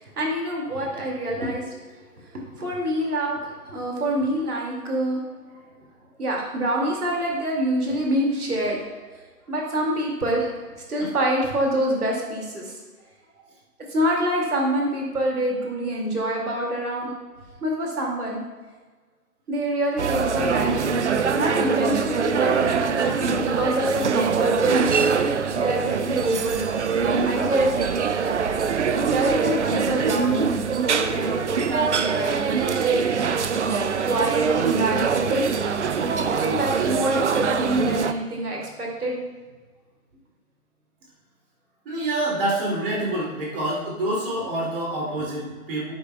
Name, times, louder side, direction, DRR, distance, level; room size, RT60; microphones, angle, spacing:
voice 1, 0.0-1.8 2.3-5.2 6.2-8.9 9.5-12.8 13.9-17.1 17.6-18.4 19.5-20.9 21.3-22.5 22.9-24.8 25.4-26.7 27.2-27.7 29.1-30.4 30.8-33.0 34.0-35.5 36.3-39.2, right 1 dB, 75° right, -1 dB, 2.4 m, -26 dB
sound 1, 20.0-38.1, right 6 dB, 50° right, 0.5 m, -23 dB
voice 2, 41.8-45.9, right 1 dB, 35° right, -4 dB, 2.6 m, -27 dB
10.5 x 8.7 x 2.3 m, 1.4 s
figure-of-eight pair, 150°, 45 cm